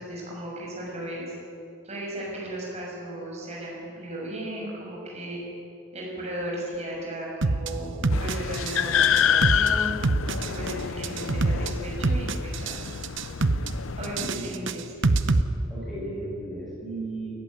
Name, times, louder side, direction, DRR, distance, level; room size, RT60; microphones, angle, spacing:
voice 1, 0.0-1.3 1.8-5.4 5.9-9.9 10.4-12.8 14.0-15.0, right 1 dB, 30° right, -3 dB, 6.4 m, -35 dB
sound 1, 7.4-7.7 8.0-8.8 9.0-9.7 10.0-10.7 11.0-11.7 12.0-12.8 13.0-13.7 14.0-15.4, right 3 dB, 60° right, 0.8 m, -24 dB
sound 2, 8.1-14.3, left 8 dB, 70° left, 0.5 m, -27 dB
voice 2, 14.2-14.5 15.7-17.3, right 2 dB, ahead, -8 dB, 6.5 m, -35 dB
18.5 x 14.5 x 9.7 m, 2.7 s
head